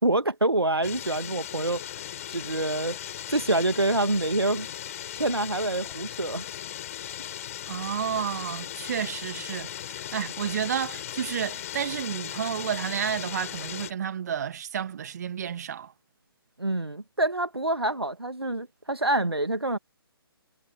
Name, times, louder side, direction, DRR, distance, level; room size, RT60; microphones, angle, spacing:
voice 1, 0.0-1.9 2.3-3.0 3.3-4.7 5.2-6.4 16.6-19.8, right 2 dB, 80° right, 2.0 m, -26 dB
sound 1, 0.8-13.9, left 11 dB, 35° left, 7.9 m, -38 dB
voice 2, 7.7-15.9, right 8 dB, 45° right, 2.3 m, -31 dB
figure-of-eight pair, 135°, 13 cm